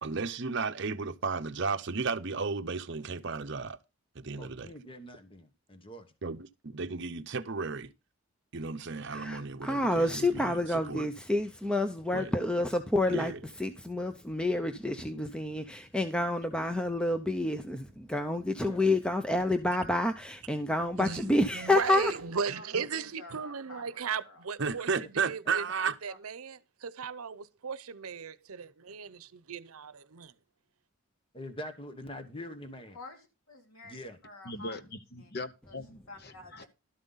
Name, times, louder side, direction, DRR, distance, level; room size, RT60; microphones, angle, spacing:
voice 1, 0.0-3.8 4.1-4.7 6.2-7.9 8.5-10.6 10.9-11.1 12.1-12.3 13.1-13.4 24.6-26.0, right 4 dB, 55° right, 0.8 m, -33 dB
voice 2, 4.4-6.1 18.5-18.9 31.3-33.0 33.8-34.2, equal, 25° left, 1.2 m, -44 dB
voice 3, 9.1-13.3 13.6-22.1, left 1 dB, 5° left, 0.6 m, -29 dB
voice 4, 21.0-25.6 26.0-30.3, right 5 dB, 85° right, 0.7 m, -37 dB
voice 5, 22.5-24.4 26.1-26.2 32.9-34.8 35.2-35.3 35.7-35.8 36.1-36.7, left 2 dB, 75° left, 3.0 m, -49 dB
voice 6, 34.4-36.6, left 2 dB, 50° left, 1.0 m, -41 dB
12.5 x 7.5 x 4.0 m
head